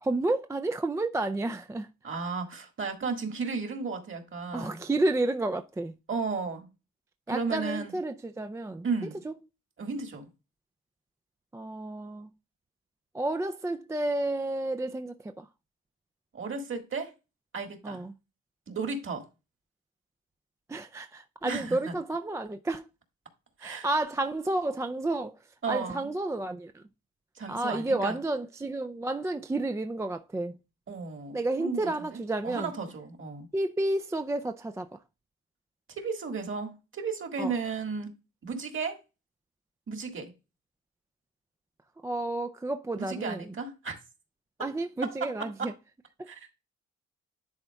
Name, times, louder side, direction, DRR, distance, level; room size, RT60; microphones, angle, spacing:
voice 1, 0.0-1.9 4.5-5.9 7.3-8.9 9.2-9.3 11.5-12.3 13.1-15.5 17.8-18.1 20.7-22.8 23.6-25.4 25.7-26.8 27.5-30.6 31.3-32.7 33.5-34.9 37.4-37.5 42.0-43.4 44.6-45.7, right 2 dB, 10° right, 0.3 m, -31 dB
voice 2, 2.0-4.8 6.1-6.7 7.3-8.0 8.8-9.2 9.8-10.3 16.3-17.1 17.5-18.0 18.7-19.3 21.4-21.9 23.6-23.9 25.6-26.1 27.4-28.2 30.9-33.5 35.9-38.1 38.4-39.0 39.9-40.3 43.0-44.0 44.6-44.7 45.0-45.7 46.3-46.5, right 4 dB, 40° right, 1.8 m, -34 dB
10.5 x 4.1 x 2.3 m
cardioid pair, 90°, 30 cm